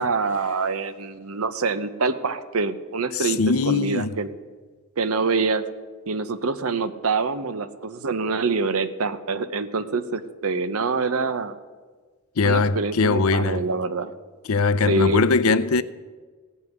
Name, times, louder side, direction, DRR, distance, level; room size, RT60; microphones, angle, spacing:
voice 1, 0.0-3.4 3.7-4.3 5.0-5.6 6.1-11.6 12.4-14.1 14.9-15.6, right 4 dB, 85° right, 0.8 m, -25 dB
voice 2, 3.1-4.2 12.4-13.7 14.5-15.8, left 4 dB, 80° left, 0.6 m, -21 dB
16.5 x 5.5 x 9.4 m
head